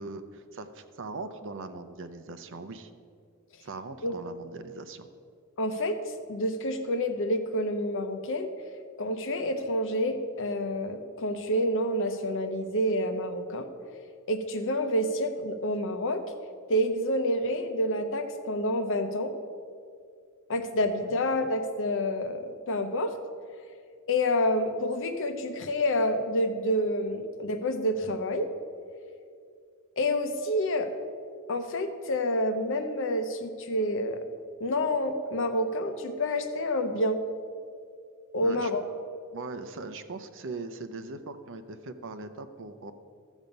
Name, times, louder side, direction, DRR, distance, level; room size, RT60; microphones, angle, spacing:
voice 1, 0.0-2.9 3.6-5.1 21.0-21.2 38.4-38.7 39.3-42.9, right 3 dB, 60° right, 10 dB, 0.7 m, -40 dB
voice 2, 5.6-6.0 6.3-8.5 9.0-13.7 14.3-16.2 16.7-19.4 20.5-23.1 24.1-28.5 30.0-30.9 31.5-34.2 34.6-37.2 38.3-38.8, left 1 dB, 60° left, 8 dB, 0.8 m, -28 dB
14.0 x 7.2 x 5.3 m, 2.3 s
head